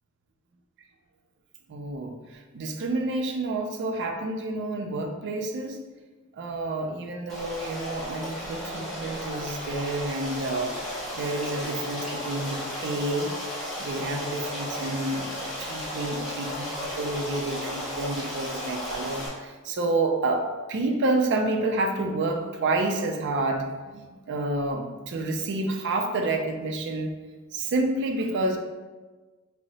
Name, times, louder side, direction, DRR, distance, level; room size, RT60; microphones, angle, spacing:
voice 1, 1.7-5.8 6.3-10.7 11.1-13.3 13.8-27.1 27.5-28.6, right 2 dB, 55° right, 3 dB, 0.4 m, -29 dB
Stream, 7.3-19.3, equal, ahead, 0.8 m, -34 dB
2.8 x 2.0 x 4.0 m, 1.3 s
head